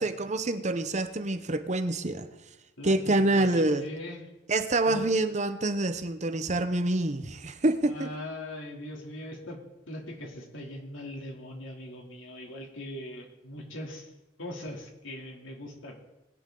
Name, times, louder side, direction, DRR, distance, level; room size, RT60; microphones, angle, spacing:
voice 1, 0.0-2.3 2.8-3.9 4.5-8.1, right 2 dB, 35° right, 10 dB, 0.8 m, -26 dB
voice 2, 2.8-4.3 4.8-5.2 7.9-9.6 9.9-14.1 14.4-15.9, left 1 dB, 90° left, 0 dB, 3.1 m, -41 dB
21.0 x 9.7 x 3.9 m, 0.97 s
head